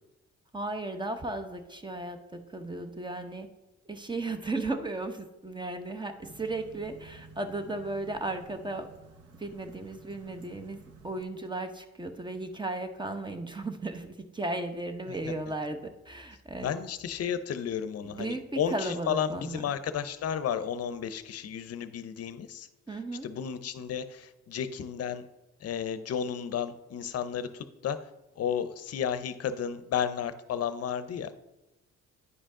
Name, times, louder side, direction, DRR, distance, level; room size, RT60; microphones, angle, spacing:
voice 1, 0.5-3.5 3.9-8.9 9.4-10.8 11.0-16.7 18.0-19.6 22.9-23.3, right 2 dB, 15° right, 8 dB, 0.8 m, -35 dB
sound 1, 6.2-11.2, right 3 dB, 50° right, 0.9 m, -52 dB
voice 2, 16.6-22.7 23.2-25.2 25.6-28.0 28.4-31.3, left 8 dB, 55° left, 12 dB, 0.7 m, -33 dB
9.6 x 5.1 x 3.7 m, 0.95 s
cardioid pair, 90°, 30 cm